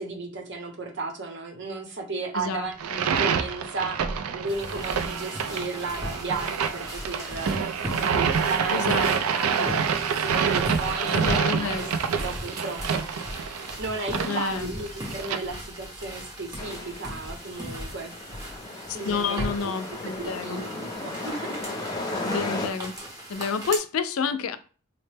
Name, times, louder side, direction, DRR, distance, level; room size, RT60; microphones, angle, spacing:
voice 1, 0.0-2.7 3.0-4.0 4.3-9.8 10.2-11.8 12.2-18.1 18.9-19.7 20.2-22.1, right 3 dB, 55° right, 0.8 m, -34 dB
voice 2, 2.3-3.0 8.7-9.5 11.1-11.9 14.2-14.7 18.9-20.6 22.2-22.9 23.3-24.6, left 5 dB, 80° left, 0.4 m, -29 dB
sound 1, 2.7-15.4, right 6 dB, 80° right, 0.4 m, -27 dB
sound 2, 4.5-23.8, equal, 15° right, 0.8 m, -38 dB
sound 3, 16.6-22.7, left 2 dB, 20° left, 0.5 m, -35 dB
4.0 x 2.1 x 3.3 m
head